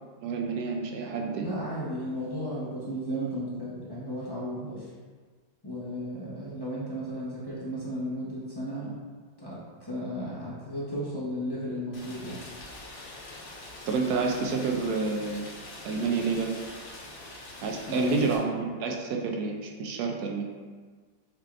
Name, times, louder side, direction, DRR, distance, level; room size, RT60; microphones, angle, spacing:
voice 1, 0.2-1.6 13.9-15.5 15.8-16.5 17.6-20.4, right 4 dB, 70° right, 2 dB, 0.9 m, -29 dB
voice 2, 1.3-4.9 5.6-9.0 9.4-9.6 9.9-12.4 17.9-18.3, equal, 30° left, -8 dB, 0.4 m, -34 dB
Rain, 11.9-18.4, left 2 dB, 65° left, 1.3 m, -44 dB
6.5 x 3.2 x 2.5 m, 1.5 s
omnidirectional pair, 2.0 m